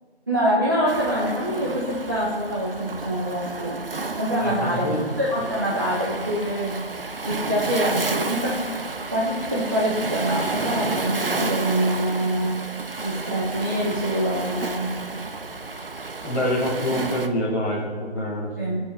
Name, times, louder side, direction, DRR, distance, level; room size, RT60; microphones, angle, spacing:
voice 1, 0.3-3.8 4.2-6.9 7.2-8.8 9.1-12.6 13.0-15.0 18.6-18.8, equal, 20° right, -6 dB, 1.0 m, -25 dB
Waves surf, 0.9-17.3, right 3 dB, 55° right, 1.1 m, -31 dB
voice 2, 4.4-5.0 16.2-18.5, left 1 dB, 15° left, -9 dB, 2.8 m, -26 dB
22.5 x 9.3 x 3.5 m, 1.5 s
figure-of-eight pair, 165°, 34 cm